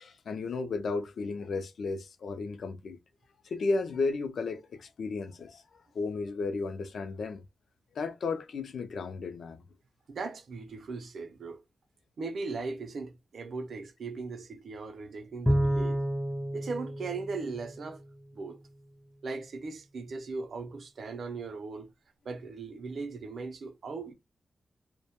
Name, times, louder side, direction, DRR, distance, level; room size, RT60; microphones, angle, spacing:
voice 1, 0.0-3.0 3.4-7.4 7.9-9.6, left 3 dB, 70° left, 0.3 m, -34 dB
voice 2, 10.1-11.6 12.2-16.1 16.5-18.0 18.3-18.6 19.2-21.9 22.2-24.1, right 4 dB, 65° right, 0.5 m, -38 dB
Bowed string instrument, 15.5-18.1, equal, ahead, 0.4 m, -30 dB
2.1 x 2.1 x 2.9 m
wide cardioid pair, 145°, 0 cm